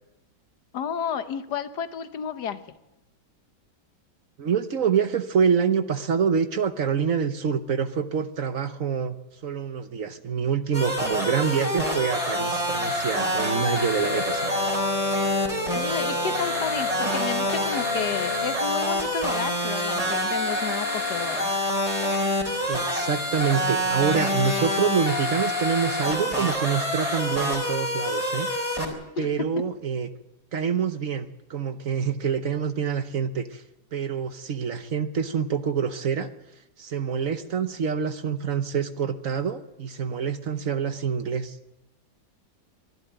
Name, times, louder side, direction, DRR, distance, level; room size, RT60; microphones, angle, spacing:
voice 1, 0.7-2.8 15.7-21.5 29.2-29.6, left 7 dB, 70° left, 10 dB, 1.7 m, -32 dB
voice 2, 4.4-9.2 9.4-14.5 22.7-28.5 29.2-30.1 30.5-33.6 33.9-36.3 36.8-41.6, right 7 dB, 55° right, 10 dB, 1.2 m, -26 dB
sound 1, 10.7-28.9, left 1 dB, 20° right, 3.9 m, -26 dB
sound 2, 12.0-27.4, left 3 dB, 40° left, 3.7 m, -39 dB
23.0 x 12.5 x 9.1 m, 0.95 s
omnidirectional pair, 1.8 m